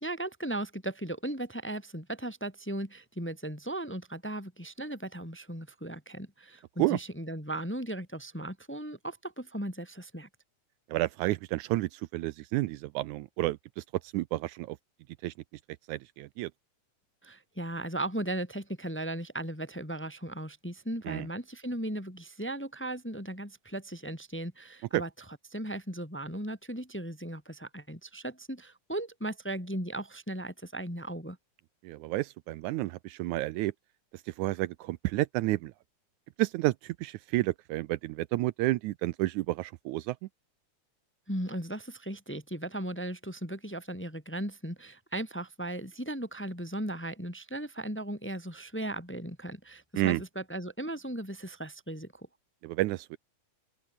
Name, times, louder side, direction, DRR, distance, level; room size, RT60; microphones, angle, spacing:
voice 1, 0.0-10.3 17.2-25.1 25.5-31.4 41.3-52.3, right 1 dB, 5° left, 1.7 m, -37 dB
voice 2, 10.9-14.8 15.2-15.3 15.9-16.5 21.1-21.3 24.9-25.0 31.8-33.7 34.3-35.7 36.4-40.3 50.0-50.2 52.6-53.2, right 18 dB, 80° right, 1.9 m, -30 dB
open air
omnidirectional pair, 3.6 m